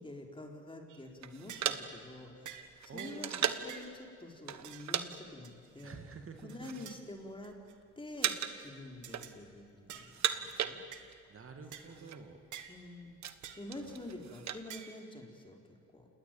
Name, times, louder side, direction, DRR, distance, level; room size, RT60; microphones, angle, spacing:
voice 1, 0.0-6.0 6.4-7.6 8.0-10.8 12.0-12.3 12.7-13.2 13.6-16.1, left 1 dB, 15° left, 2 dB, 4.2 m, -48 dB
sound 1, 0.9-1.1 1.5-1.8 2.4-2.7 3.0-3.3 3.7-3.9 4.6-4.9 5.4-5.9 6.5-7.0 7.4-7.7 8.2-8.4 9.0-9.3 9.9-10.1 10.9-11.0 11.7-11.9 12.5-12.7 13.4-13.7 14.7-15.0, right 9 dB, 80° right, 2.0 m, -49 dB
sound 2, 1.2-3.8 4.5-5.1 5.3-5.5 6.2-7.0 7.3-7.8 8.2-8.7 9.0-9.6 10.0-11.3 11.5-11.6 11.8-12.2 12.7-14.6, right 9 dB, 60° right, 1.4 m, -37 dB
voice 2, 2.9-3.5 5.8-6.9 11.3-12.4 13.3-13.4 13.7-14.0, right 5 dB, 45° right, 5 dB, 2.5 m, -49 dB
29.0 x 19.5 x 9.1 m, 2.3 s
cardioid pair, 90°, 30 cm